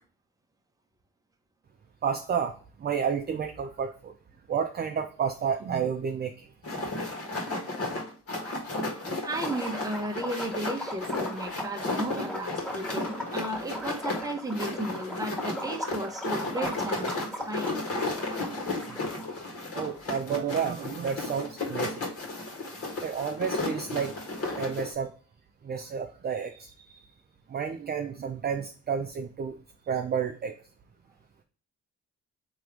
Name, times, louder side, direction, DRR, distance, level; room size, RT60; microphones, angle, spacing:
voice 1, 2.0-2.5 2.8-4.1 4.5-6.5 19.7-22.0 23.0-24.1 24.6-25.1 25.6-27.0 27.5-29.6 29.9-30.5, right 7 dB, 35° right, 5 dB, 0.5 m, -31 dB
sound 1, 6.6-24.9, left 2 dB, 50° left, 1.6 m, -34 dB
voice 2, 9.2-17.8, right 1 dB, 10° right, 4 dB, 0.9 m, -34 dB
Liquid, 9.4-19.3, equal, 5° left, 1.6 m, -39 dB
3.7 x 3.0 x 4.6 m, 0.40 s
cardioid pair, 90°, 30 cm